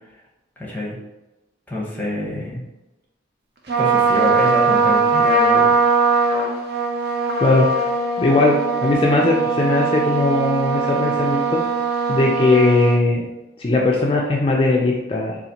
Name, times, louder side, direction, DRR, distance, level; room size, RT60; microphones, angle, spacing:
voice 1, 0.6-1.0 1.7-2.6 3.8-5.7, left 1 dB, 10° left, -5 dB, 0.8 m, -26 dB
Trumpet, 3.7-13.0, right 4 dB, 60° right, 0.5 m, -20 dB
voice 2, 7.4-7.8 8.2-8.6 8.8-11.6 12.1-13.2 13.6-15.4, left 2 dB, 30° left, -2 dB, 0.3 m, -18 dB
3.9 x 2.4 x 2.7 m, 1.0 s
head